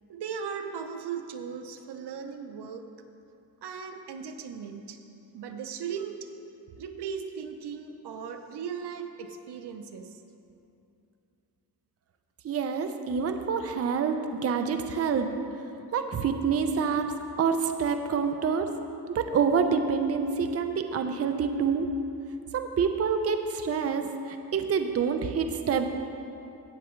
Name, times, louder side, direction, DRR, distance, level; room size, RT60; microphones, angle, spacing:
voice 1, 0.1-2.9 3.6-5.0 5.3-6.3 6.8-10.2, right 6 dB, 80° right, 7 dB, 0.8 m, -37 dB
voice 2, 12.4-14.2 14.4-15.3 15.9-17.1 17.4-18.7 19.1-21.9 22.5-25.9, right 6 dB, 40° right, 6 dB, 0.6 m, -27 dB
16.5 x 6.9 x 3.2 m, 2.7 s
wide cardioid pair, 120°, 40 cm